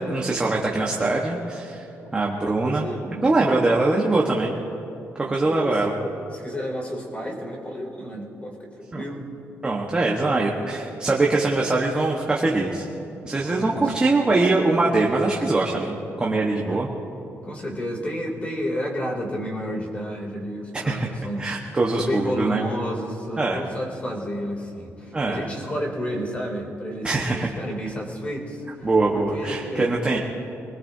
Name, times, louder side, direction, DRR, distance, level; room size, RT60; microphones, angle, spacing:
voice 1, 0.0-1.8 2.1-2.9 3.2-4.5 5.2-5.9 8.9-9.0 9.6-12.8 13.2-16.9 20.8-21.1 21.4-22.6 23.4-23.6 25.1-25.5 27.0-27.5 28.8-30.2, right 2 dB, 20° right, -2 dB, 1.3 m, -22 dB
voice 2, 2.4-3.3 5.1-6.0 6.3-8.7 8.9-9.3 13.5-13.9 16.6-16.8 17.4-21.5 21.9-28.7 29.1-30.2, equal, 25° left, -1 dB, 2.9 m, -31 dB
25.5 x 20.0 x 2.8 m, 2.7 s
cardioid pair, 140°, 5 cm